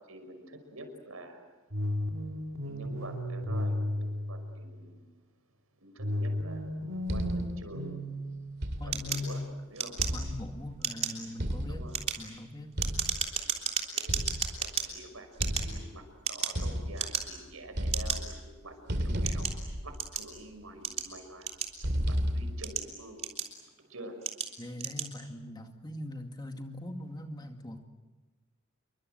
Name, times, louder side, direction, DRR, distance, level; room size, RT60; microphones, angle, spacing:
voice 1, 0.1-1.4 2.6-5.0 5.8-7.9 8.8-9.4 9.7-10.0 11.7-12.0 13.9-19.5 19.8-21.5 21.7-23.2 23.9-24.1, right 1 dB, 90° right, 6 dB, 5.8 m, -47 dB
sound 1, 1.7-4.8 6.0-8.9, left 1 dB, 70° right, 3.1 m, -34 dB
sound 2, 7.1-7.7 8.6-9.2 10.0-10.8 11.4-12.2 12.8-13.4 14.1-14.9 15.4-16.1 16.5-17.4 17.7-18.5 18.9-20.4 21.8-22.8, equal, 55° right, 2.5 m, -33 dB
voice 2, 8.8-9.4 10.1-11.9 12.2-12.7 24.6-27.8, left 1 dB, 20° left, 4 dB, 2.1 m, -40 dB
sound 3, 8.9-10.5 10.8-11.2 11.8-14.9 15.3-16.6 16.9-17.5 17.9-18.2 18.8-20.3 20.8-22.0 22.5-23.7 24.2-24.5 24.8-25.1, right 7 dB, 30° right, 3.5 m, -33 dB
28.5 x 24.0 x 7.9 m, 1.2 s
head